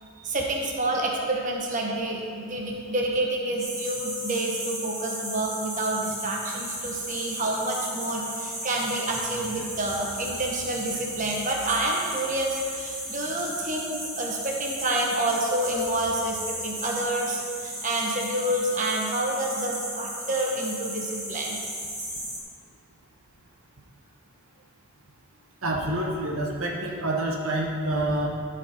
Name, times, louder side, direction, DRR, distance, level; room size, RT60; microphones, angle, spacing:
voice 1, 0.2-21.6, right 1 dB, 35° right, -1 dB, 1.1 m, -28 dB
sound 1, 3.6-22.4, equal, 15° right, 1.6 m, -35 dB
voice 2, 25.6-28.3, right 1 dB, 65° right, -1 dB, 0.9 m, -27 dB
13.0 x 5.1 x 4.4 m, 2.3 s
head